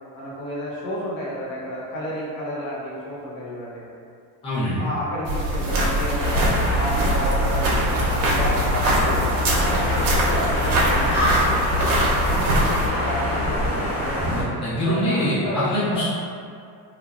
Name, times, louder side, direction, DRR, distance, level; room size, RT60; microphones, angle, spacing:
voice 1, 0.1-3.8 4.8-8.0 8.3-11.5 13.0-14.5 14.9-16.0, equal, 85° left, -7 dB, 1.0 m, -31 dB
voice 2, 4.4-4.8 14.4-16.1, equal, 15° left, -11 dB, 0.5 m, -24 dB
sound 1, 5.3-12.9, right 1 dB, 80° right, 0.7 m, -23 dB
sound 2, 6.2-14.4, left 1 dB, 45° left, 0.9 m, -24 dB
3.1 x 2.1 x 2.4 m, 2.4 s
cardioid pair, 180°, 41 cm